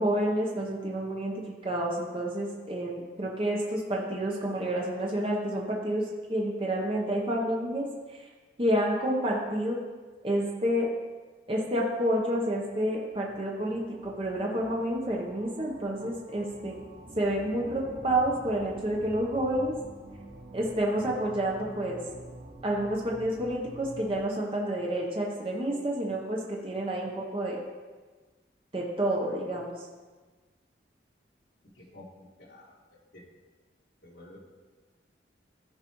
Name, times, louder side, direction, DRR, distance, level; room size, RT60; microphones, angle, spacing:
voice 1, 0.0-1.3 1.6-6.0 6.3-7.9 8.6-9.8 10.2-10.9 11.5-16.7 17.2-19.7 20.5-22.0 22.6-27.6 28.7-29.7, right 1 dB, 30° right, -2 dB, 0.9 m, -29 dB
sound 1, 12.4-24.2, right 1 dB, 80° right, 1.4 m, -48 dB
voice 2, 34.0-34.4, left 2 dB, 75° left, -3 dB, 1.7 m, -49 dB
14.5 x 4.8 x 3.1 m, 1.4 s
head